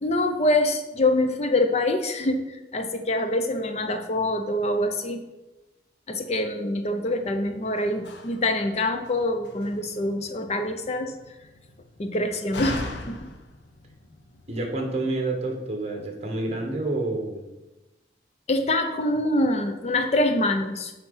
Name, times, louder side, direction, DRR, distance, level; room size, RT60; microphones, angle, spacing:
voice 1, 0.0-5.2 6.1-11.1 12.0-13.3 18.5-20.9, left 1 dB, 40° left, 7 dB, 0.6 m, -25 dB
Slam, 7.1-14.7, left 2 dB, 85° left, 0.9 m, -40 dB
voice 2, 14.5-17.4, right 2 dB, 35° right, 3 dB, 1.4 m, -28 dB
7.1 x 5.1 x 5.6 m, 1.0 s
head